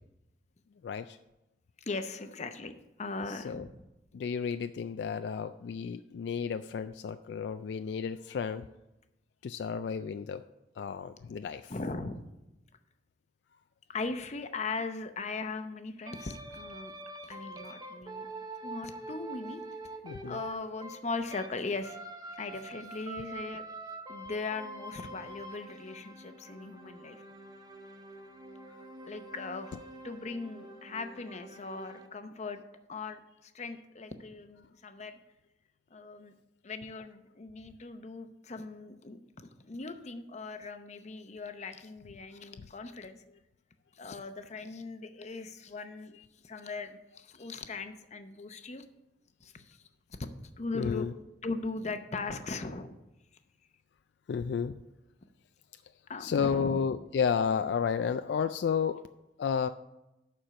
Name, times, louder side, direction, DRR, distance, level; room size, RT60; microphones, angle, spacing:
voice 1, 0.8-1.2 3.3-3.7 4.1-8.7 9.4-10.5 10.8-11.8 20.0-20.4 29.7-29.8 37.0-37.1 46.1-46.3 50.7-51.1 54.3-54.8 56.2-59.0 59.4-59.7, left 6 dB, 70° left, 10 dB, 0.3 m, -32 dB
voice 2, 1.9-2.7 3.0-3.7 11.7-12.3 13.9-16.9 17.2-18.3 18.6-19.6 20.3-22.0 22.4-23.6 24.1-27.2 29.1-29.7 30.0-32.6 32.9-35.2 35.9-36.3 36.6-39.2 39.6-43.2 44.0-46.1 46.4-48.8 49.4-49.8 50.1-50.2 50.6-51.1 51.4-52.9 56.1-56.8, left 3 dB, 40° left, 8 dB, 0.7 m, -39 dB
sound 1, 16.1-21.5 21.8-32.1, right 2 dB, 25° right, 0.9 m, -45 dB
11.5 x 4.4 x 6.3 m, 0.94 s
head